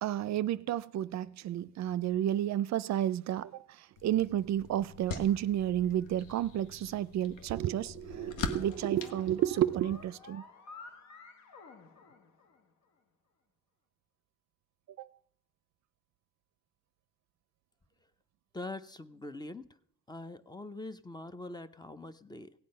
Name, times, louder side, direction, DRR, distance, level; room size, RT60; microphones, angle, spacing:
voice 1, 0.0-3.5 4.0-10.4 15.0-15.1, right 12 dB, 65° right, 0.5 m, -31 dB
sound 1, 4.0-10.1, left 5 dB, 85° left, 1.2 m, -43 dB
sound 2, 7.4-12.9, left 4 dB, 70° left, 1.2 m, -52 dB
voice 2, 18.5-19.7 20.1-22.5, left 2 dB, 15° left, 0.6 m, -43 dB
16.5 x 8.5 x 5.4 m
cardioid pair, 90°, 30 cm